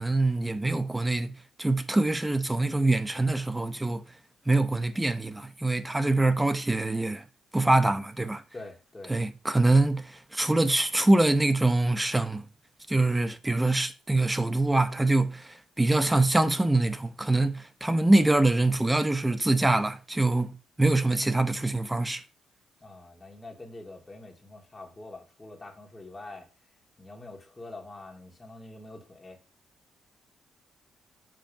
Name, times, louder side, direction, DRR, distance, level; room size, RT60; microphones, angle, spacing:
voice 1, 0.0-4.0 4.5-7.2 7.5-8.4 9.1-12.4 12.9-20.5 20.8-22.2, right 2 dB, 10° right, 0.8 m, -24 dB
voice 2, 8.5-9.1 22.8-26.5 27.0-29.4, left 2 dB, 20° left, 2.6 m, -45 dB
7.6 x 4.5 x 5.2 m
cardioid pair, 90°, 0 cm